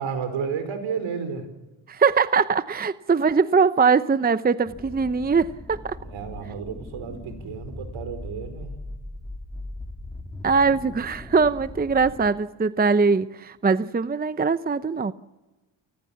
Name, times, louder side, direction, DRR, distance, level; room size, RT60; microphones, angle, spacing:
voice 1, 0.0-1.5 6.0-8.7, right 6 dB, 70° right, 9 dB, 5.1 m, -32 dB
voice 2, 1.9-6.0 10.4-15.1, right 5 dB, 20° right, 13 dB, 0.8 m, -21 dB
sound 1, 4.7-12.3, left 1 dB, 10° left, 3.2 m, -39 dB
29.5 x 20.0 x 7.3 m, 1.2 s
supercardioid pair, 70°, 49 cm